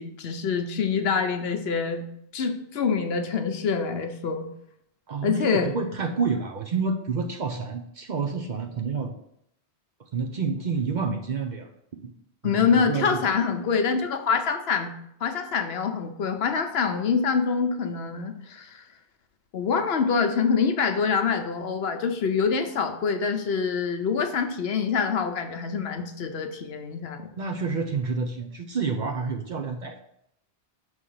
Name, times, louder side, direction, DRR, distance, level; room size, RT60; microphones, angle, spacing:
voice 1, 0.0-2.0 2.3-4.5 5.2-5.7 12.4-14.9 15.2-18.8 19.5-27.3, left 5 dB, 70° left, 6 dB, 0.9 m, -25 dB
voice 2, 5.1-9.1 10.1-11.7 12.0-12.1 12.4-13.3 27.4-30.0, right 5 dB, 55° right, 4 dB, 0.6 m, -29 dB
6.2 x 3.2 x 5.5 m, 0.75 s
omnidirectional pair, 1.1 m